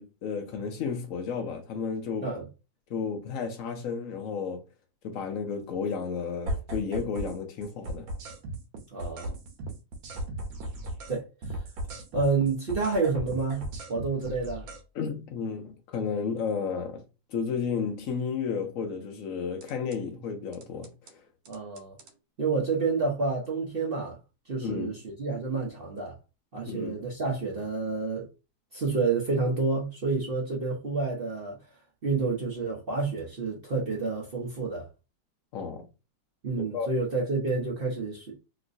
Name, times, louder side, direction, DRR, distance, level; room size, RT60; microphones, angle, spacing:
voice 1, 0.0-2.3 2.9-4.6 5.0-8.1 14.9-17.0 17.3-21.2 24.6-25.0 26.7-27.0 35.5-35.9 36.7-36.9, left 6 dB, 90° left, 0.7 m, -32 dB
sound 1, 6.5-7.4 7.6-11.2 11.4-14.8 19.6-20.0 20.5-21.1 21.5-22.1, right 1 dB, 80° right, 1.5 m, -37 dB
voice 2, 8.9-9.4 11.1-11.3 12.1-14.7 21.5-21.9 22.4-24.2 24.5-26.1 26.5-28.3 28.7-31.6 32.0-34.9 36.4-38.4, right 4 dB, 55° right, 0.6 m, -29 dB
3.0 x 2.9 x 2.6 m
omnidirectional pair, 2.1 m